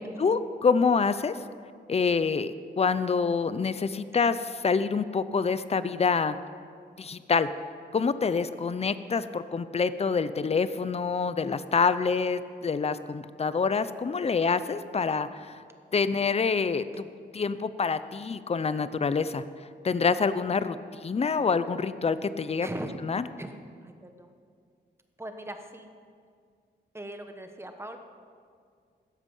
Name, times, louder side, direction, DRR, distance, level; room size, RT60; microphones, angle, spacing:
voice 1, 0.2-1.4 1.9-6.4 7.0-7.5 7.9-15.6 15.9-17.1 17.3-19.4 19.8-22.7 23.0-23.2, left 5 dB, 35° left, 13 dB, 0.6 m, -26 dB
voice 2, 22.6-23.0 23.4-24.3 25.2-25.9 26.9-28.0, right 1 dB, 15° right, 6 dB, 1.2 m, -40 dB
16.0 x 13.0 x 5.5 m, 2.2 s
wide cardioid pair, 110°, 18 cm